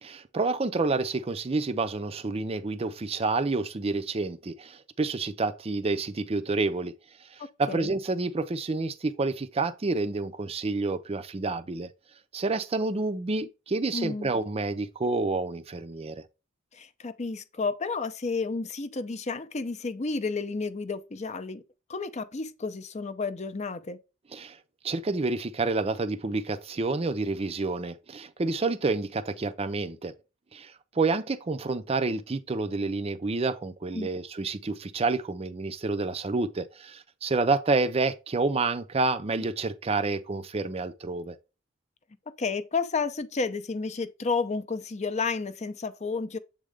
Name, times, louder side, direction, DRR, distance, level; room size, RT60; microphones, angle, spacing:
voice 1, 0.0-6.9 7.2-11.9 12.3-16.2 24.3-24.6 24.8-30.1 30.5-41.4, right 3 dB, 30° right, 0.5 m, -29 dB
voice 2, 7.4-7.9 13.9-14.3 16.7-21.6 21.9-24.0 33.9-34.1 42.4-46.4, left 4 dB, 35° left, 0.6 m, -31 dB
7.4 x 3.7 x 3.4 m
head